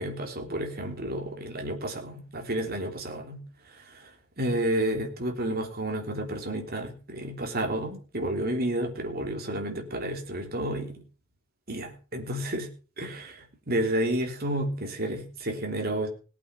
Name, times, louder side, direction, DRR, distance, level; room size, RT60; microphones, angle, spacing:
voice 1, 0.0-3.4 3.7-4.1 4.4-11.0 11.7-12.7 13.0-16.1, right 1 dB, 50° right, 3 dB, 3.4 m, -31 dB
18.5 x 8.5 x 6.0 m, 0.37 s
head